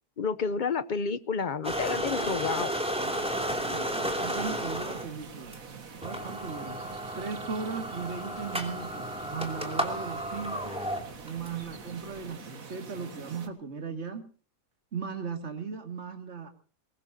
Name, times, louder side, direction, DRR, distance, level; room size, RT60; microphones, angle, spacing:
voice 1, 0.2-2.7, left 5 dB, 40° left, 15 dB, 0.7 m, -30 dB
sound 1, 1.6-5.1 5.5-5.6 6.0-11.5, equal, 5° right, 2.7 m, -33 dB
sound 2, 3.0-13.5, right 5 dB, 60° right, 2.1 m, -45 dB
voice 2, 3.4-5.6 6.0-6.8 7.2-10.7 11.2-14.3 14.9-16.5, right 5 dB, 45° right, 5 dB, 2.5 m, -37 dB
22.5 x 20.0 x 2.8 m, 0.40 s
omnidirectional pair, 1.7 m